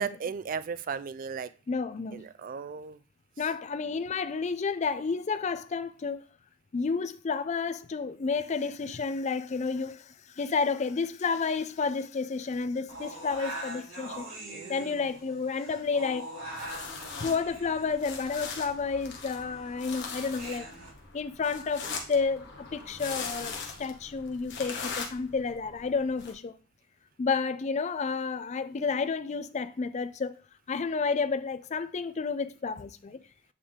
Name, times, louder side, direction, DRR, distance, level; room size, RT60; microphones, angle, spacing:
voice 1, 0.0-1.5 2.1-3.0 14.5-15.0, right 6 dB, 40° right, 0.3 m, -36 dB
voice 2, 1.7-2.2 3.4-6.2 6.7-14.3 14.7-16.3 17.2-20.7 21.1-26.5 27.2-30.3 30.7-33.2, left 5 dB, 35° left, 0.4 m, -31 dB
sound 1, 12.9-20.9, right 1 dB, 85° right, 2.9 m, -43 dB
sound 2, 16.5-26.3, left 5 dB, 55° left, 1.2 m, -41 dB
8.6 x 3.4 x 3.6 m
head